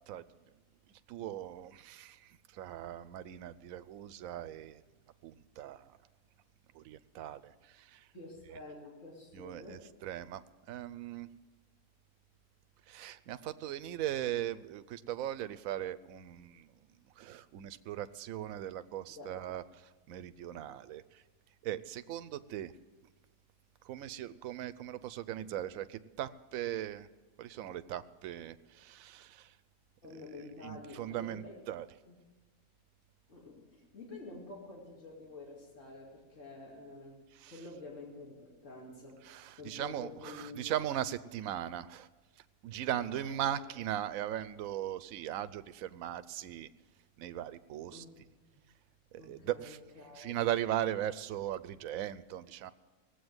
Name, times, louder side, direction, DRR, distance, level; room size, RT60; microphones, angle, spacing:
voice 1, 1.1-4.8 5.2-5.9 6.7-8.1 9.3-10.4 10.7-11.3 12.9-16.7 17.2-19.6 20.1-21.2 21.6-22.7 23.8-27.1 27.4-29.5 30.6-31.9 37.4-37.5 39.2-42.1 42.6-46.7 47.2-48.0 49.1-49.8 50.2-52.7, right 11 dB, 75° right, 13 dB, 1.0 m, -38 dB
voice 2, 8.1-9.9 19.2-19.3 30.0-31.6 32.1-32.2 33.3-39.2 39.6-40.7 42.8-43.7 47.9-48.1 49.2-50.3, left 2 dB, 60° left, -3 dB, 2.9 m, -49 dB
19.0 x 8.1 x 7.9 m, 1.2 s
omnidirectional pair, 1.5 m